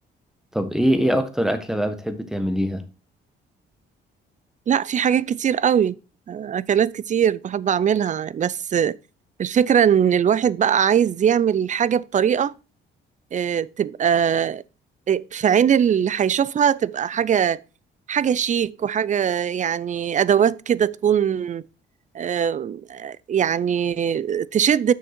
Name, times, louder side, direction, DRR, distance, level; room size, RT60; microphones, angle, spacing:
voice 1, 0.5-2.8, equal, ahead, 1.3 m, -23 dB
voice 2, 4.7-6.0 6.3-9.0 9.4-12.5 13.3-14.6 15.1-17.6 18.1-21.6 22.1-24.9, right 8 dB, 40° right, 0.4 m, -21 dB
6.5 x 6.4 x 4.3 m
cardioid pair, 90°, 20 cm